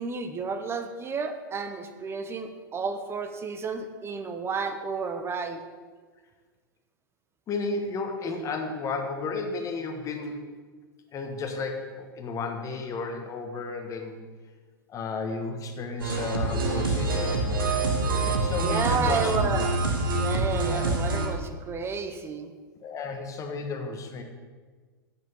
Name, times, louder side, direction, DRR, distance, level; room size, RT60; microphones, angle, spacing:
voice 1, 0.0-5.6 18.6-19.8 20.2-22.5, right 5 dB, 20° right, 8 dB, 0.8 m, -31 dB
voice 2, 7.5-10.4 11.1-14.2 14.9-17.6 18.2-19.6 20.6-21.0 22.8-24.2, left 3 dB, 30° left, 4 dB, 1.3 m, -33 dB
sound 1, 16.0-21.3, right 2 dB, 85° right, 1.4 m, -26 dB
7.9 x 6.0 x 5.5 m, 1.4 s
hypercardioid pair, 105°, 11 cm